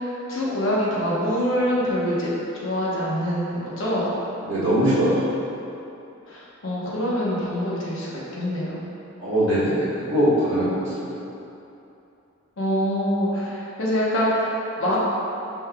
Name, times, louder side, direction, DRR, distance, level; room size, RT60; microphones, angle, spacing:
voice 1, 0.0-2.3 2.6-4.1 6.3-8.8 12.6-15.0, equal, 70° left, -6 dB, 0.9 m, -25 dB
voice 2, 4.4-5.3 9.2-11.2, right 1 dB, 65° right, -10 dB, 1.3 m, -22 dB
5.3 x 3.4 x 2.2 m, 2.9 s
head